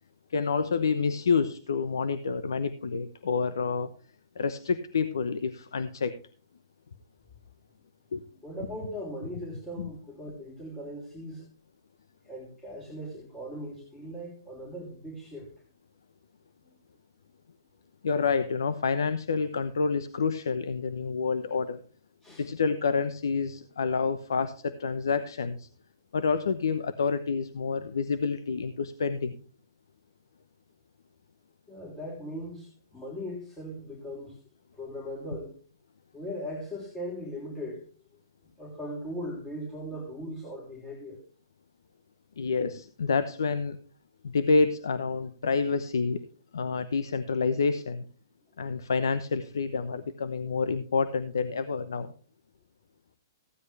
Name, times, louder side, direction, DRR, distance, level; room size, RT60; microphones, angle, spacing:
voice 1, 0.3-3.9 4.4-6.2 8.1-8.2 9.8-9.9 18.0-21.8 22.4-25.7 26.1-29.4 42.4-43.8 44.2-46.2 46.5-48.1 48.6-52.1, left 5 dB, 85° left, 12 dB, 0.8 m, -28 dB
voice 2, 8.4-11.5 12.3-15.5 22.2-22.5 31.7-34.4 34.7-35.6 36.1-37.9 38.6-41.2, equal, 10° left, -2 dB, 3.5 m, -39 dB
15.5 x 9.6 x 3.3 m, 0.41 s
hypercardioid pair, 140°, 2 cm